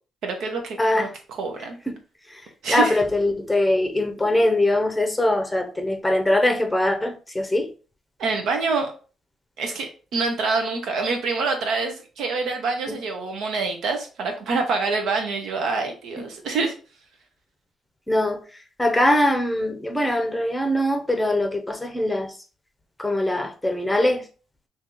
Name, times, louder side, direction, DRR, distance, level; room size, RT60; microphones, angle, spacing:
voice 1, 0.2-1.8 2.6-3.0 8.2-8.9 9.6-16.7, right 4 dB, 75° right, 0.9 m, -26 dB
voice 2, 0.8-1.1 2.3-2.4 2.7-7.7 12.9-13.0 16.2-16.3 18.1-18.4 18.8-22.4 23.0-24.2, left 1 dB, 10° left, 0.7 m, -22 dB
2.8 x 2.7 x 3.7 m
cardioid pair, 90°, 0 cm